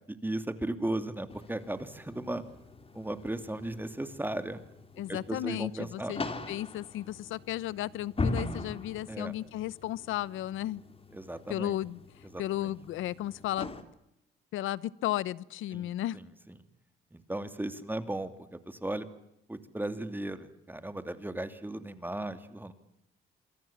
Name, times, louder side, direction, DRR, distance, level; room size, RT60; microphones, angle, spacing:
voice 1, 0.1-2.4 2.9-4.6 5.1-6.1 9.1-9.3 11.1-11.8 12.3-12.7 15.7-16.2 17.1-19.1 19.5-22.7, right 1 dB, 10° right, 10 dB, 2.9 m, -36 dB
sound 1, 1.3-13.8, left 2 dB, 30° left, 3.6 m, -41 dB
voice 2, 5.0-10.8 11.5-12.0 12.4-13.7 14.5-16.2, left 14 dB, 85° left, 20 dB, 1.0 m, -34 dB
27.5 x 23.5 x 7.4 m, 0.79 s
cardioid pair, 90°, 20 cm